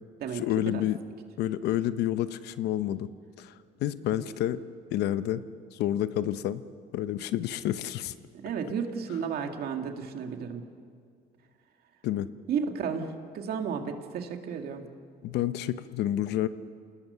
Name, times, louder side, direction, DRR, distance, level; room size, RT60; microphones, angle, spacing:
voice 1, 0.3-1.0 1.4-3.1 3.4-3.5 3.8-4.6 4.9-5.4 5.7-6.6 6.9-8.1 12.0-12.3 15.2-16.5, left 12 dB, 80° left, 13 dB, 0.9 m, -29 dB
voice 2, 8.3-10.6 12.5-14.9, right 6 dB, 65° right, 5 dB, 2.1 m, -33 dB
28.0 x 19.5 x 6.9 m, 2.2 s
cardioid pair, 110°, 17 cm